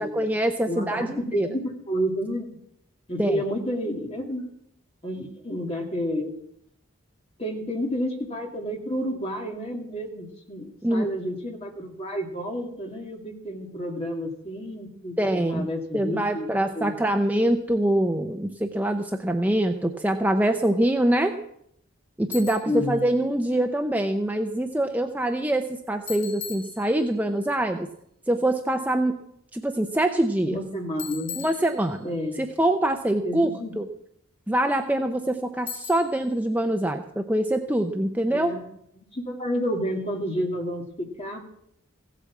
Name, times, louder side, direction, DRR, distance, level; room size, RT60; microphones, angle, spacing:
voice 1, 0.0-1.5 3.2-3.4 10.8-11.1 15.2-15.7 15.9-21.3 22.2-27.9 28.3-29.2 29.5-30.6 31.4-32.1 32.4-33.9 34.5-38.5, right 1 dB, 10° right, 5 dB, 0.6 m, -24 dB
voice 2, 0.6-2.5 3.1-4.5 5.0-6.3 7.4-16.5 16.7-17.2 22.7-23.1 30.4-31.5 32.0-32.4 33.2-33.8 38.3-38.6 39.1-41.4, equal, 30° left, 1 dB, 2.4 m, -30 dB
Bicycle, 22.3-22.8 26.1-27.3 31.0-32.2 35.7-36.3, left 8 dB, 65° left, 2.4 m, -39 dB
16.0 x 8.4 x 7.3 m, 0.73 s
head